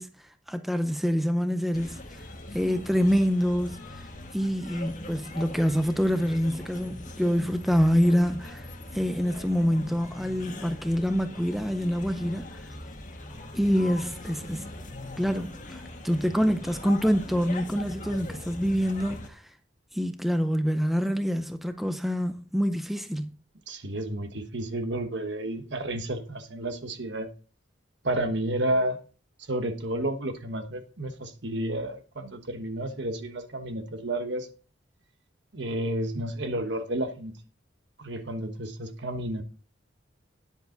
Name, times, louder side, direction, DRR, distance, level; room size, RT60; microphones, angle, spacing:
voice 1, 0.0-2.3 2.5-12.7 13.5-14.7 15.2-19.5 19.9-23.3, equal, ahead, 0.5 m, -26 dB
sound 1, 1.7-19.3, left 2 dB, 40° left, 1.5 m, -41 dB
voice 2, 23.7-27.3 28.0-29.0 29.5-34.5 35.5-37.3 38.0-39.4, right 1 dB, 65° right, 1.2 m, -31 dB
10.5 x 7.2 x 3.9 m
head